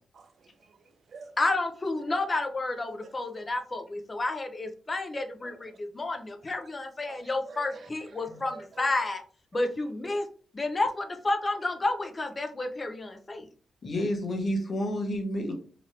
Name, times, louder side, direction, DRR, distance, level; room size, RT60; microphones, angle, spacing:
voice 1, 0.1-1.4 2.1-2.2 3.0-3.1 3.7-3.8 5.4-5.8 7.1-9.1 10.0-10.2, right 4 dB, 55° right, 0.4 m, -49 dB
voice 2, 1.4-9.2 9.5-10.3 10.5-13.5, left 2 dB, 30° left, 0.6 m, -30 dB
voice 3, 13.8-15.5, equal, 45° left, 0.9 m, -30 dB
2.9 x 2.6 x 3.1 m
cardioid pair, 105°, 0 cm